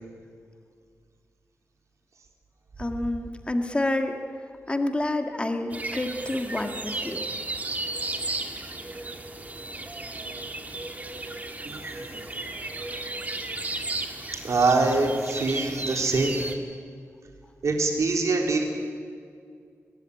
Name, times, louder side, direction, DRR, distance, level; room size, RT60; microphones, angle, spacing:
voice 1, 2.8-4.2 4.7-7.2, left 1 dB, 20° left, 6 dB, 1.9 m, -28 dB
sound 1, 5.7-16.5, right 2 dB, 25° right, 2.0 m, -34 dB
voice 2, 11.6-12.2 14.4-16.4 17.6-18.6, right 3 dB, 65° right, 2 dB, 3.9 m, -24 dB
20.5 x 19.5 x 9.9 m, 2.2 s
wide cardioid pair, 130°, 6 cm